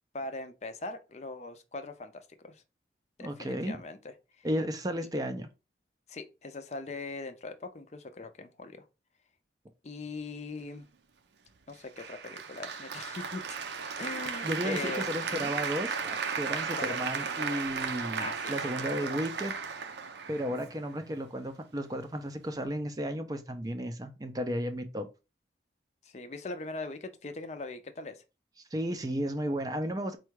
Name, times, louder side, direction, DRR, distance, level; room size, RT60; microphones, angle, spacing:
voice 1, 0.1-2.6 3.2-4.0 4.4-4.5 6.1-8.8 9.8-10.9 11.7-13.6 14.0-15.5 16.8-17.1 18.2-18.5 18.9-19.2 20.5-20.6 26.0-28.2, left 3 dB, 40° left, 0.5 m, -41 dB
voice 2, 3.2-3.8 4.4-5.5 14.4-19.5 20.3-25.1 28.7-30.2, equal, 20° right, 0.4 m, -33 dB
Applause, 12.0-21.0, right 5 dB, 75° right, 0.6 m, -35 dB
4.4 x 2.3 x 4.5 m
head